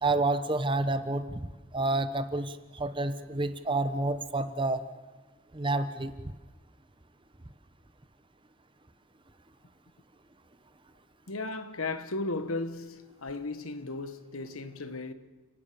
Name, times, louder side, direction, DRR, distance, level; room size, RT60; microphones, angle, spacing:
voice 1, 0.0-1.5 1.7-4.8 5.5-6.1, right 2 dB, 20° right, 0.9 m, -29 dB
voice 2, 11.3-15.1, left 2 dB, 75° left, 1.5 m, -35 dB
30.0 x 18.0 x 7.0 m
head